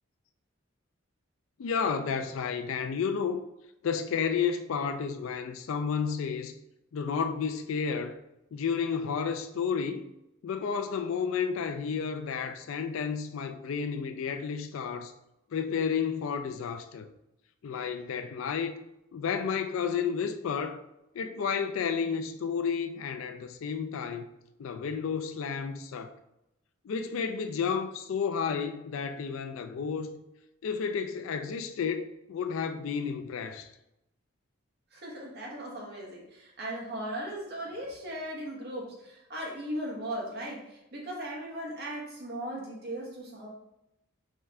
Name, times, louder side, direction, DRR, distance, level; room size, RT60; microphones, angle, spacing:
voice 1, 1.6-3.4 3.8-6.5 6.9-8.2 8.5-10.1 10.4-15.1 15.5-17.1 17.6-18.7 19.1-20.8 21.1-24.3 24.6-26.1 26.8-30.2 30.6-33.7, left 6 dB, 75° left, 0.3 m, -31 dB
voice 2, 34.9-43.5, right 1 dB, 50° right, 1.2 m, -38 dB
4.5 x 3.3 x 3.5 m
head